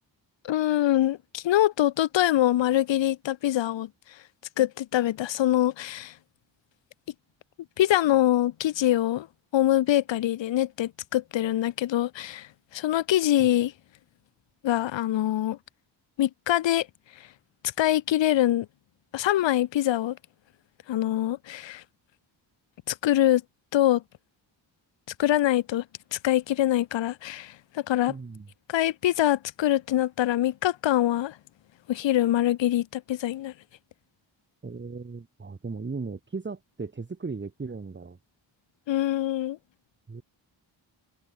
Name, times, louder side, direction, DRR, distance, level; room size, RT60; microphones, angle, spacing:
voice 1, 0.4-3.9 4.6-6.1 7.8-9.3 9.5-13.7 14.6-15.6 16.2-16.9 17.8-18.7 19.1-20.2 20.9-21.8 22.9-23.4 23.7-24.0 25.2-25.8 26.1-28.1 28.7-31.4 31.9-33.5 38.9-39.6, left 13 dB, 70° left, 0.7 m, -24 dB
voice 2, 28.1-28.5 34.6-38.2 40.1-40.2, right 4 dB, 25° right, 1.4 m, -37 dB
wide cardioid pair, 130°, 47 cm